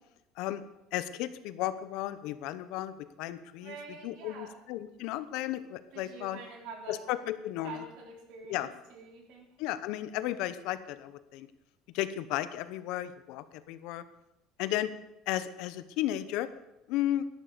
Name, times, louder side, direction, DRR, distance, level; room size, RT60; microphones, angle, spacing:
voice 1, 0.9-3.8 4.0-6.4 6.9-7.8 8.5-8.7 9.6-11.5 11.9-14.0 14.6-14.9 15.3-16.5 16.9-17.2, left 13 dB, 60° left, 13 dB, 0.8 m, -34 dB
voice 2, 3.6-4.6 5.9-7.0 7.6-9.6, right 4 dB, 60° right, 1 dB, 4.0 m, -46 dB
13.0 x 11.5 x 6.7 m, 0.89 s
cardioid pair, 170°, 0 cm